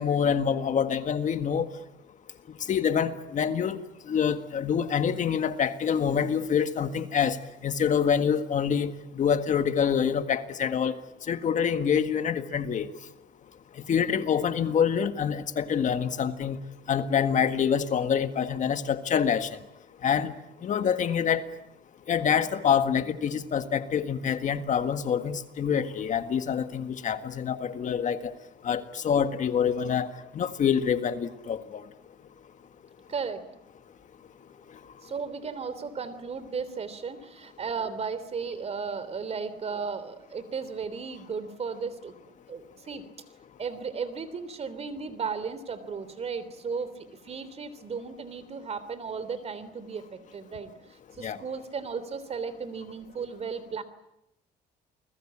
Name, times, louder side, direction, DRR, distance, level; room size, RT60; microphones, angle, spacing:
voice 1, 0.0-1.7 2.7-7.4 7.6-11.0 11.3-12.9 13.9-16.6 16.9-19.5 20.0-20.3 20.6-21.4 22.1-28.3 28.6-30.1 30.3-31.8 51.2-51.4, left 7 dB, 45° left, 9 dB, 1.8 m, -26 dB
voice 2, 33.1-33.4 35.0-43.0 43.6-50.7 51.1-53.8, right 5 dB, 40° right, 14 dB, 3.3 m, -35 dB
29.0 x 21.0 x 8.8 m, 0.86 s
cardioid pair, 110°, 17 cm